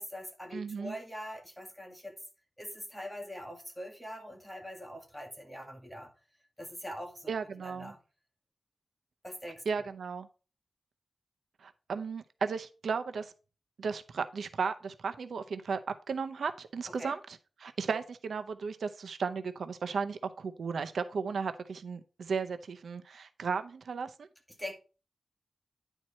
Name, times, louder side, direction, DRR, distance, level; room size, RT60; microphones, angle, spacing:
voice 1, 0.0-2.1 2.6-6.1 6.6-7.3 7.6-8.0 9.2-9.6 17.0-17.2 24.6-24.7, equal, 5° left, 2 dB, 2.1 m, -43 dB
voice 2, 0.5-0.9 7.3-7.9 9.7-10.3 11.6-13.3 13.8-15.8 16.1-17.2 17.6-24.3, right 5 dB, 90° right, 9 dB, 0.7 m, -35 dB
9.9 x 4.6 x 4.2 m, 0.33 s
wide cardioid pair, 125°, 0 cm